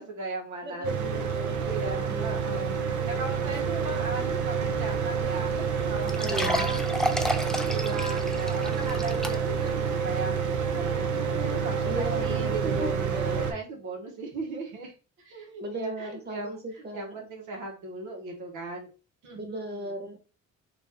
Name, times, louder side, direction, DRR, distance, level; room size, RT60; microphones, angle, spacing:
voice 1, 0.0-0.9 1.5-14.9 15.2-18.9 19.2-19.9, right 3 dB, 90° right, 1 dB, 1.0 m, -37 dB
voice 2, 0.6-2.5 6.2-6.7 8.7-9.4 11.8-13.6 15.6-17.2 19.4-20.2, equal, 35° right, 4 dB, 1.1 m, -37 dB
Mechanical fan, 0.8-13.5, right 6 dB, 70° right, 0.6 m, -28 dB
sound 1, 5.2-5.3 5.6-5.7 6.1-9.7 10.1-10.2 10.8-10.9, left 1 dB, ahead, 0.4 m, -32 dB
2.8 x 2.6 x 3.5 m, 0.34 s
cardioid pair, 90°, 30 cm